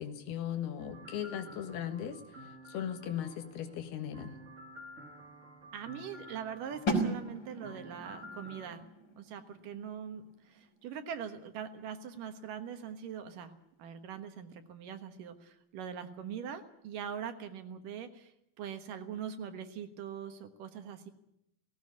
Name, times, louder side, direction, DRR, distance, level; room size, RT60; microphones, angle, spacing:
voice 1, 0.0-2.2 2.7-4.4, left 9 dB, 85° left, 8 dB, 3.6 m, -38 dB
sound 1, 0.8-8.7, equal, 50° right, 0.8 m, -51 dB
voice 2, 5.7-8.9 9.2-13.5 13.8-18.3 18.6-21.1, right 8 dB, 65° right, 8 dB, 2.7 m, -42 dB
sound 2, 6.9-12.6, right 1 dB, 30° left, 4.5 m, -38 dB
17.5 x 17.5 x 9.6 m, 0.80 s
omnidirectional pair, 4.4 m